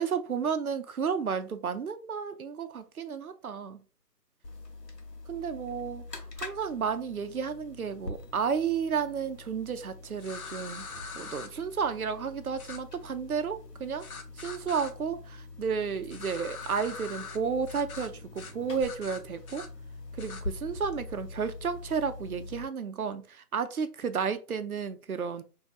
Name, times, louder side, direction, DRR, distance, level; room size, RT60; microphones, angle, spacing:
voice 1, 0.0-3.8 5.3-6.0 6.4-10.9 11.1-14.1 14.4-19.7 20.1-25.4, right 6 dB, 60° right, 0.6 m, -32 dB
sound 1, 4.4-22.6, left 2 dB, 85° left, 1.3 m, -44 dB
sound 2, 10.2-11.5 12.6-12.8 14.0-14.9 16.1-17.4 17.7-18.1 18.3-18.5 18.8-19.7 20.2-20.4, left 5 dB, 60° left, 0.8 m, -42 dB
5.1 x 2.7 x 2.4 m
figure-of-eight pair, 155°, 48 cm